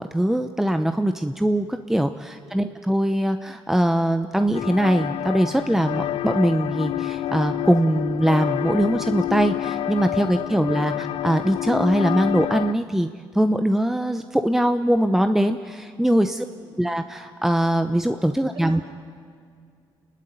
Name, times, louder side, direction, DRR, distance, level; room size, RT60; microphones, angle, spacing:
voice 1, 0.0-13.1 13.3-16.4 16.8-18.8, right 1 dB, 5° right, 8 dB, 0.8 m, -22 dB
sound 1, 4.5-12.7, left 13 dB, 75° left, 0.5 m, -28 dB
voice 2, 10.3-10.9 16.3-16.8 18.5-18.8, right 3 dB, 65° right, -1 dB, 6.6 m, -46 dB
29.0 x 12.0 x 9.4 m, 2.2 s
cardioid pair, 75°, 10 cm